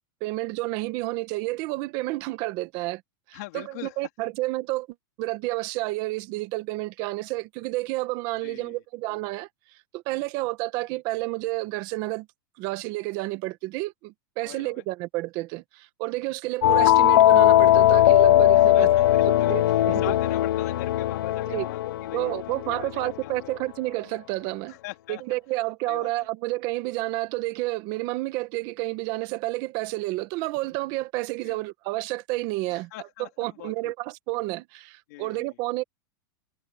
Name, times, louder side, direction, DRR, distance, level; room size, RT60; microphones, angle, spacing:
voice 1, 0.2-3.0 3.3-4.9 5.2-9.5 9.9-12.3 12.6-18.9 19.3-20.2 21.5-21.7 22.1-24.8 25.1-32.9 33.2-35.8, right 20 dB, 35° right, 1.3 m, -30 dB
voice 2, 3.3-4.0 8.4-8.8 14.4-14.8 18.5-23.5 24.7-25.2 25.9-26.3 31.4-31.6 32.7-33.9 35.1-35.5, left 20 dB, 45° left, 2.8 m, -42 dB
sound 1, 16.6-23.1, left 13 dB, 75° left, 0.6 m, -19 dB
supercardioid pair, 175°, 12 cm